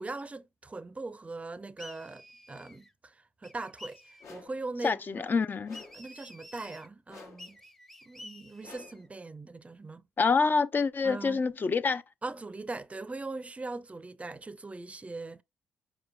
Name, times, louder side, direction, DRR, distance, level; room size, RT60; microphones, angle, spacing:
voice 1, 0.0-5.3 5.9-7.6 8.1-10.0 11.0-11.4 12.2-15.4, right 3 dB, 25° right, 0.6 m, -40 dB
sound 1, 1.8-2.9 3.4-4.4 5.7-6.9 7.4-9.1, left 1 dB, 5° left, 0.7 m, -50 dB
sound 2, 4.2-4.7 5.6-6.1 7.1-7.6 8.6-9.1, left 4 dB, 65° left, 1.1 m, -51 dB
voice 2, 4.8-5.8 10.2-12.0, left 4 dB, 40° left, 0.5 m, -27 dB
5.1 x 4.6 x 2.2 m
hypercardioid pair, 45°, 5 cm